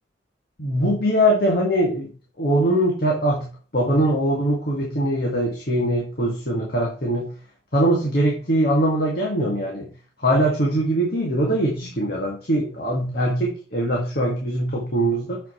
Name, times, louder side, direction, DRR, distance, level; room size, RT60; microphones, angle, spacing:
voice 1, 0.6-2.1 2.4-3.5 3.7-7.3 7.7-9.9 10.2-15.4, right 1 dB, 55° left, -2 dB, 2.0 m, -22 dB
7.4 x 6.0 x 4.3 m, 0.35 s
head